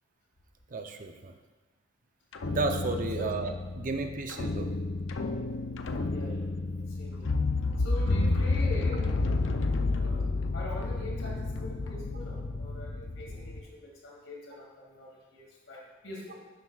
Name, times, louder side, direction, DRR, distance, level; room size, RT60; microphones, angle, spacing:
voice 1, 0.7-1.3 2.5-4.7, right 3 dB, 45° right, 6 dB, 0.6 m, -33 dB
sound 1, 2.3-13.6, left 3 dB, 70° left, 0.6 m, -30 dB
voice 2, 6.1-6.5 6.8-7.3 7.8-9.1 9.5-9.6 10.0-10.3 10.5-16.4, left 1 dB, 90° left, -2 dB, 2.3 m, -43 dB
10.5 x 7.8 x 2.4 m, 1.3 s
head